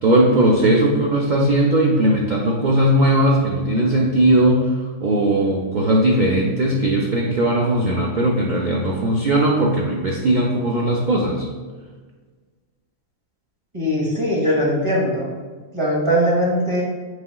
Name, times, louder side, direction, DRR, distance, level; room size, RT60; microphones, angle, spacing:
voice 1, 0.0-4.7 5.0-11.5, right 1 dB, 80° right, -2 dB, 0.4 m, -18 dB
voice 2, 13.7-15.3 15.7-16.8, equal, 25° right, -5 dB, 0.8 m, -20 dB
5.0 x 3.7 x 2.2 m, 1.4 s
omnidirectional pair, 1.4 m